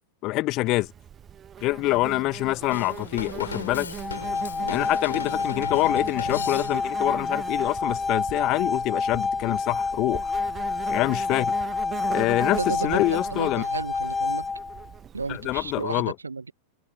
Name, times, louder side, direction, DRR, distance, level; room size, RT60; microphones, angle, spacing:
voice 1, 0.2-0.9 1.6-3.9 4.7-10.3 10.9-11.5 12.1-13.6 15.3-16.1, left 19 dB, 40° left, 1.5 m, -26 dB
Insect, 0.7-15.8, right 8 dB, 25° right, 1.1 m, -40 dB
Drum kit / Drum, 2.7-7.1, left 7 dB, 70° left, 5.1 m, -37 dB
sound 1, 3.9-14.9, left 4 dB, 15° left, 2.0 m, -28 dB
voice 2, 4.6-4.9 12.6-14.5 15.1-16.5, right 4 dB, 80° right, 1.4 m, -33 dB
figure-of-eight pair, 90°, 0 cm